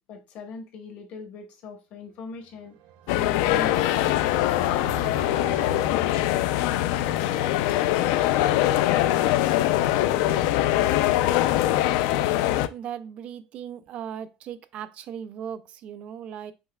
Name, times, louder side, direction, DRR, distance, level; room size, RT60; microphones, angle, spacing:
voice 1, 0.1-2.8 3.1-4.1, left 4 dB, 50° left, 1.0 m, -40 dB
sound 1, 2.4-6.9, right 8 dB, 75° right, 0.7 m, -43 dB
sound 2, 3.1-12.7, left 13 dB, 85° left, 0.3 m, -23 dB
voice 2, 12.7-16.5, right 9 dB, 40° right, 0.4 m, -37 dB
5.5 x 3.9 x 2.2 m
cardioid pair, 175°, 3 cm